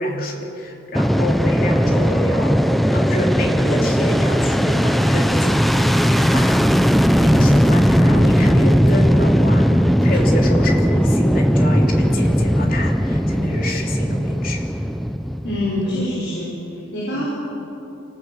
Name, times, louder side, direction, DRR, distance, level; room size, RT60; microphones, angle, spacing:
voice 1, 0.0-6.9 7.2-9.7 10.0-14.6 17.1-17.2, left 1 dB, 45° left, 0 dB, 3.3 m, -28 dB
Fixed-wing aircraft airplane, 0.9-16.1, equal, ahead, 0.5 m, -17 dB
voice 2, 15.4-17.2, left 1 dB, 65° left, -6 dB, 5.5 m, -25 dB
26.0 x 19.0 x 8.0 m, 2.9 s
head